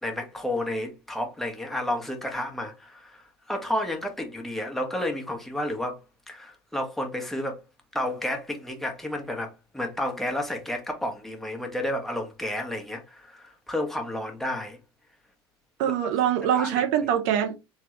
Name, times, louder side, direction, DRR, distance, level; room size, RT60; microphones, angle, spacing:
voice 1, 0.0-3.2 3.5-6.0 6.3-7.6 7.9-14.8 15.9-16.0 16.5-16.8, left 1 dB, ahead, 1.1 m, -31 dB
voice 2, 15.8-17.6, right 9 dB, 60° right, 0.5 m, -24 dB
3.5 x 2.2 x 3.1 m
hypercardioid pair, 70°, 14 cm